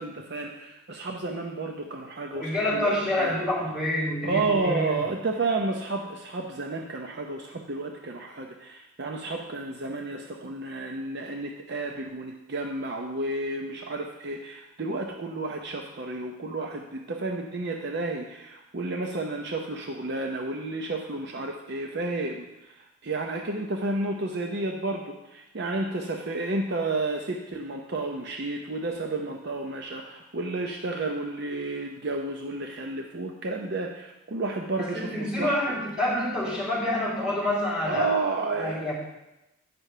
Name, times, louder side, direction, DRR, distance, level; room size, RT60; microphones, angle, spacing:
voice 1, 0.0-3.3 4.2-35.8 37.9-38.9, right 3 dB, 50° right, 2 dB, 0.6 m, -31 dB
voice 2, 2.3-5.0 34.8-38.1 38.6-38.9, left 1 dB, 5° right, -8 dB, 3.5 m, -27 dB
9.1 x 5.5 x 4.9 m, 0.95 s
head